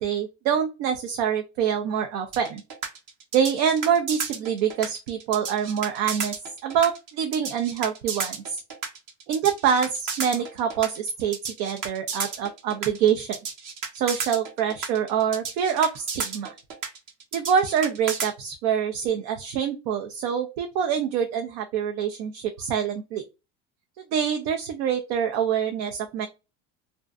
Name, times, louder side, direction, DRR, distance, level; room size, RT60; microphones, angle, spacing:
voice 1, 0.0-2.6 3.3-6.3 6.6-8.6 9.3-13.4 13.9-16.5 17.3-23.2 24.1-26.3, right 8 dB, 85° right, 5 dB, 0.6 m, -25 dB
sound 1, 2.3-18.3, right 5 dB, 40° right, 0.7 m, -32 dB
2.6 x 2.1 x 2.3 m, 0.27 s
supercardioid pair, 100°, 49 cm